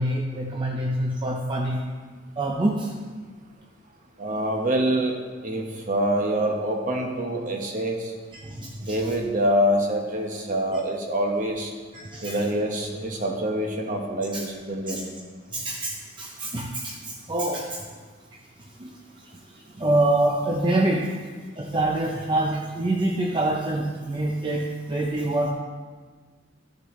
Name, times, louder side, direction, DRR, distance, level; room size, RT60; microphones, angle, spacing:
voice 1, 0.0-1.8 2.4-3.0 8.3-9.1 11.9-12.4 14.3-14.4 14.9-15.0 15.5-17.8 18.8-18.9 19.7-21.1 21.6-25.5, right 1 dB, 25° right, -1 dB, 0.6 m, -26 dB
voice 2, 4.2-5.1 5.4-8.1 8.8-11.7 12.2-15.0, equal, 45° right, 1 dB, 1.3 m, -25 dB
13.5 x 6.6 x 3.2 m, 1.5 s
head